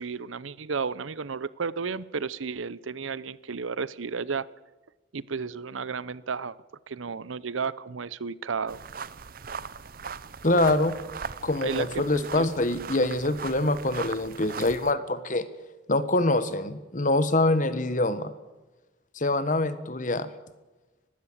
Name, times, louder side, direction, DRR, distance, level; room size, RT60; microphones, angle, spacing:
voice 1, 0.0-4.5 5.1-6.6 6.9-8.8 11.6-11.9 12.4-12.5, right 5 dB, 80° right, 19 dB, 0.7 m, -32 dB
sound 1, 8.7-14.9, right 6 dB, 45° right, 0.6 m, -39 dB
voice 2, 10.4-10.9 11.4-15.5 15.9-18.3 19.1-20.3, left 2 dB, 40° left, 13 dB, 1.3 m, -25 dB
21.0 x 15.0 x 8.7 m, 1.1 s
head